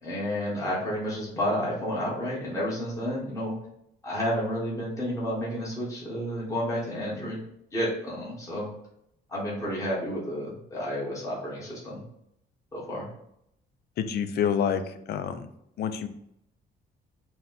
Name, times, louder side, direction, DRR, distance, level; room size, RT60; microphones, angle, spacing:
voice 1, 0.0-3.5 4.0-7.4 7.7-8.7 9.3-12.0 12.7-13.1, equal, 15° left, -6 dB, 1.2 m, -31 dB
voice 2, 14.0-15.5 15.8-16.1, left 8 dB, 60° left, 9 dB, 0.4 m, -28 dB
4.1 x 2.2 x 4.0 m, 0.76 s
cardioid pair, 155°, 19 cm